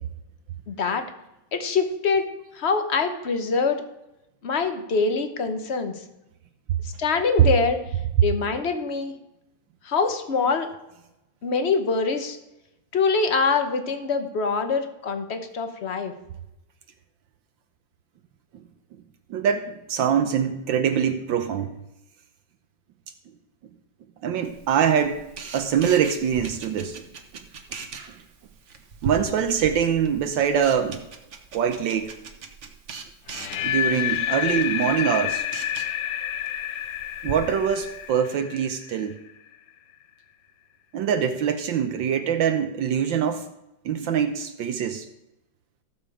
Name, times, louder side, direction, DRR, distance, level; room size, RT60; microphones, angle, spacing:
voice 1, 0.7-1.0 1.5-2.3 2.5-3.8 4.4-5.9 7.0-7.8 8.2-9.1 9.8-10.7 11.4-12.4 12.9-16.1, left 4 dB, 40° left, 8 dB, 1.1 m, -24 dB
voice 2, 19.3-21.8 24.2-25.2 25.5-27.0 28.0-28.2 29.0-31.0 31.5-32.1 33.6-35.4 37.2-39.1 40.9-43.5 43.8-45.1, right 8 dB, 75° right, 7 dB, 1.4 m, -24 dB
Camera, 24.4-38.1, right 4 dB, 45° right, 1.1 m, -41 dB
sound 1, 33.3-39.3, left 11 dB, 70° left, 0.8 m, -29 dB
15.0 x 7.1 x 4.9 m, 0.91 s
omnidirectional pair, 2.2 m